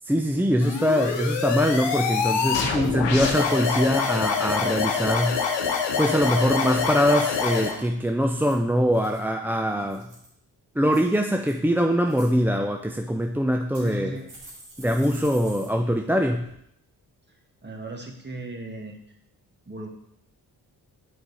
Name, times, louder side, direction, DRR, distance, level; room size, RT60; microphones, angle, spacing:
voice 1, 0.0-5.4 6.0-10.1 10.8-14.2 14.8-16.5, equal, 5° right, 3 dB, 0.5 m, -23 dB
sound 1, 0.6-7.8, left 6 dB, 75° left, 1.0 m, -25 dB
sound 2, 2.3-2.9 3.4-3.8 8.2-9.2 9.7-10.4 10.9-11.5 11.9-12.3 13.1-13.2 13.7-15.7 16.0-16.1 16.4-16.5, right 2 dB, 90° right, 3.0 m, -48 dB
voice 2, 13.8-14.2 17.6-19.0 19.7-19.9, right 1 dB, 25° right, 2 dB, 1.6 m, -36 dB
5.9 x 5.1 x 4.2 m, 0.72 s
supercardioid pair, 45°, 44 cm